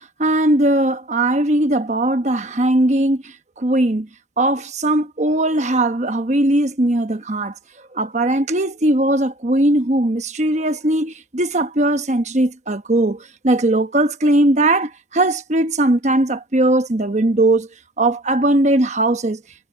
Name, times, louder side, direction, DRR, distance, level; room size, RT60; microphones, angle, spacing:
voice 1, 0.0-4.1 4.4-7.5 7.9-17.7 18.0-19.4, right 1 dB, 40° right, 1.1 m, -19 dB
head